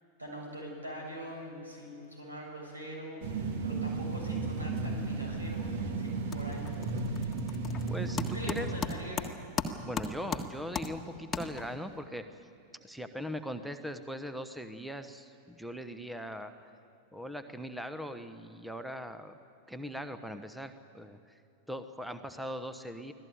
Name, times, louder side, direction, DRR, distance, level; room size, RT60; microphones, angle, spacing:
voice 1, 0.2-7.3 7.6-7.8 8.2-9.3, equal, 80° right, 0 dB, 7.3 m, -43 dB
sound 1, 3.2-8.8, right 3 dB, 55° right, 1.9 m, -34 dB
sound 2, 5.4-5.8 6.1-12.0, left 4 dB, 20° left, 1.6 m, -38 dB
voice 2, 7.9-8.7 9.8-12.4 12.8-16.7 17.1-19.4 19.7-21.4 21.7-23.1, equal, ahead, 9 dB, 1.1 m, -40 dB
24.5 x 15.5 x 9.4 m, 2.4 s
figure-of-eight pair, 90°, 0 cm